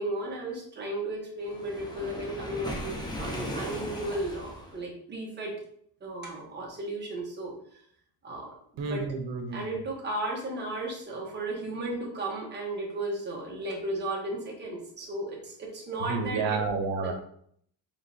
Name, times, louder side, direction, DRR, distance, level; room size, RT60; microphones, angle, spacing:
voice 1, 0.0-5.6 6.0-7.5 8.2-9.2 9.5-16.6 17.0-17.1, right 2 dB, 25° right, -2 dB, 1.1 m, -35 dB
Waves surf, 1.5-4.8, equal, 10° left, 0.6 m, -37 dB
voice 2, 8.8-9.6 16.1-17.1, right 4 dB, 85° right, 5 dB, 0.9 m, -30 dB
5.1 x 3.2 x 2.7 m, 0.65 s
cardioid pair, 165°, 43 cm